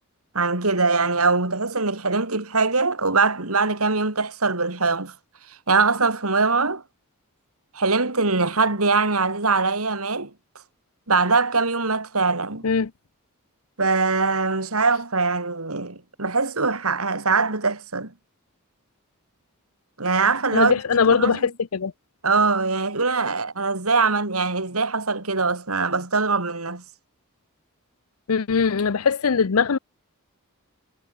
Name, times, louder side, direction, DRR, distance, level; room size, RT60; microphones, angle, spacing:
voice 1, 0.3-5.1 5.7-6.8 7.7-10.3 11.1-12.7 13.8-18.1 20.0-20.7 21.1-21.5 22.2-26.8, right 4 dB, 85° right, 4.0 m, -22 dB
voice 2, 20.5-21.9 28.3-29.8, left 5 dB, 85° left, 0.6 m, -21 dB
head